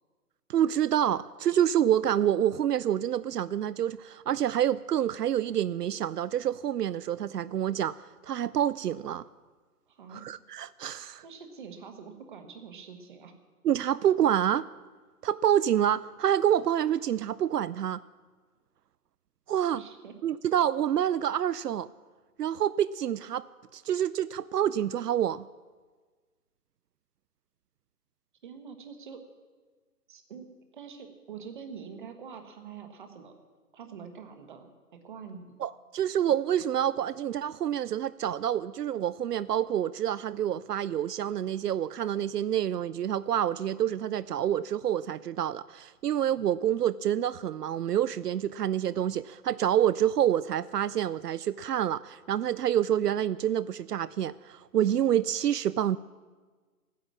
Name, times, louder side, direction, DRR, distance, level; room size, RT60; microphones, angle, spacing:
voice 1, 0.5-8.0 8.2-9.2 10.1-11.2 13.6-14.7 15.2-18.0 19.5-19.8 20.2-21.9 22.4-23.4 23.7-25.5 35.6-56.0, right 10 dB, 80° right, 17 dB, 0.5 m, -27 dB
voice 2, 9.9-10.2 11.2-13.3 19.7-20.1 28.4-29.2 30.1-33.4 33.7-34.7 35.0-35.6, right 6 dB, 30° right, 6 dB, 1.4 m, -45 dB
14.0 x 10.0 x 7.4 m, 1.4 s
hypercardioid pair, 160°, 46 cm